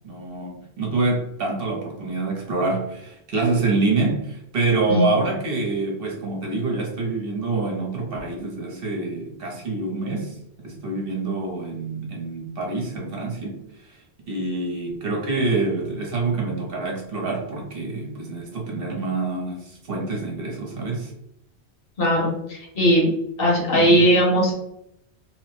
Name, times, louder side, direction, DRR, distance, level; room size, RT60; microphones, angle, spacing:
voice 1, 0.0-21.1 23.7-24.1, right 3 dB, 60° right, -1 dB, 0.9 m, -26 dB
voice 2, 22.0-23.1 23.4-24.5, equal, 60° left, -1 dB, 1.0 m, -18 dB
3.1 x 2.0 x 3.0 m, 0.77 s
omnidirectional pair, 1.1 m